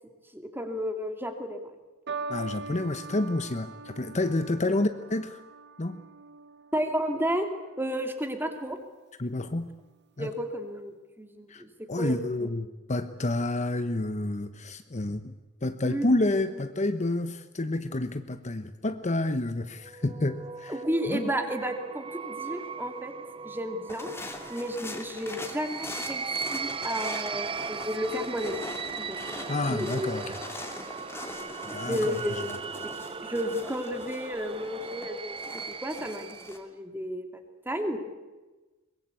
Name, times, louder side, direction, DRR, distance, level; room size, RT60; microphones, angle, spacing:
voice 1, 0.3-1.6 6.7-7.5 7.8-8.8 10.2-11.7 12.0-12.2 12.4-12.5 15.8-16.1 20.7-23.1 23.4-24.1 24.5-28.6 29.0-29.2 29.7-30.2 31.9-37.3 37.6-38.0, equal, 10° right, 6 dB, 2.6 m, -32 dB
sound 1, 2.1-8.6 9.4-9.8, right 4 dB, 55° right, 1.4 m, -42 dB
voice 2, 2.3-5.4 5.8-6.0 9.2-9.7 10.2-10.3 11.5-11.6 11.9-15.3 15.6-20.8 21.1-21.3 29.5-30.4 31.6-32.6, left 2 dB, 35° left, 10 dB, 1.0 m, -29 dB
sound 2, 19.8-36.6, right 5 dB, 25° right, 0.8 m, -38 dB
sound 3, 23.9-36.6, left 2 dB, 10° left, 2.7 m, -42 dB
23.5 x 21.0 x 8.4 m, 1.2 s
head